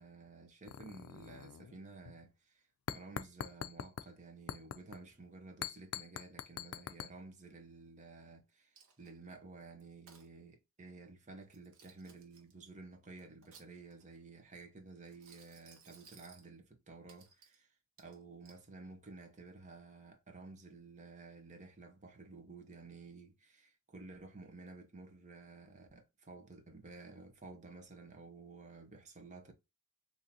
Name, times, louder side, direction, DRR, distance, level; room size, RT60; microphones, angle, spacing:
voice 1, 0.0-2.6 2.9-29.5, right 3 dB, 35° right, 0.9 m, -53 dB
sound 1, 0.6-1.8 2.1-2.2 2.9-4.1 4.5-5.0 5.6-7.1, left 9 dB, 80° left, 0.3 m, -43 dB
Coin (dropping), 8.7-9.3 9.8-10.3 11.4-12.5 13.2-14.1 15.0-16.5 17.1-17.6 18.0-18.6, right 6 dB, 85° right, 1.0 m, -61 dB
3.7 x 2.7 x 2.7 m
head